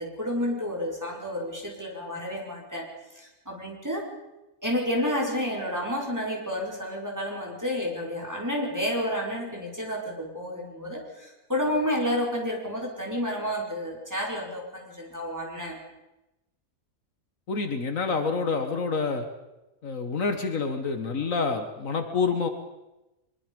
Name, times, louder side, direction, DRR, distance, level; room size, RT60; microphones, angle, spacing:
voice 1, 0.0-4.1 4.6-15.8, equal, 10° right, -2 dB, 4.7 m, -30 dB
voice 2, 17.5-19.3 19.8-22.5, left 4 dB, 65° left, 7 dB, 1.9 m, -27 dB
23.0 x 22.0 x 5.3 m, 0.99 s
omnidirectional pair, 1.5 m